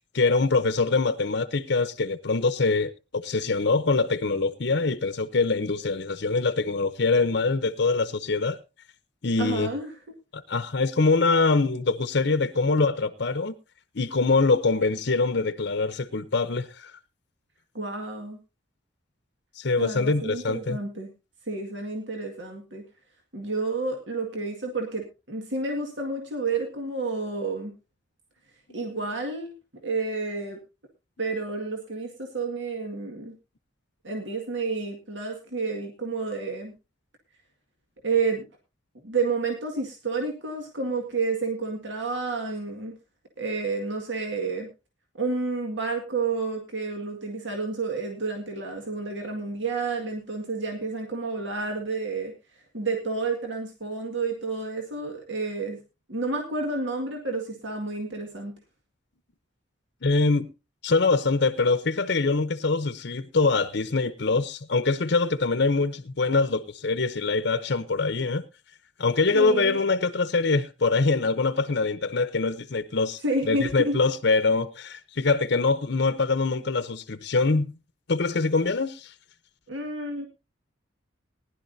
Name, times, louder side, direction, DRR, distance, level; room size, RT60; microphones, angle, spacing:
voice 1, 0.1-8.6 9.2-9.7 10.3-13.5 13.9-16.9 19.6-20.8 28.8-28.9 60.0-60.5 60.8-68.4 69.0-77.8 78.1-79.1, left 3 dB, 60° left, 0.8 m, -24 dB
voice 2, 9.4-9.9 17.7-18.4 19.8-21.1 21.5-22.8 23.3-27.7 28.7-30.6 31.2-33.3 34.0-36.7 38.0-38.4 39.0-42.9 43.4-44.7 45.2-52.3 52.7-55.8 56.1-58.5 69.3-69.8 73.2-74.0 79.7-80.3, right 3 dB, 70° right, 2.0 m, -30 dB
19.5 x 11.0 x 2.7 m
head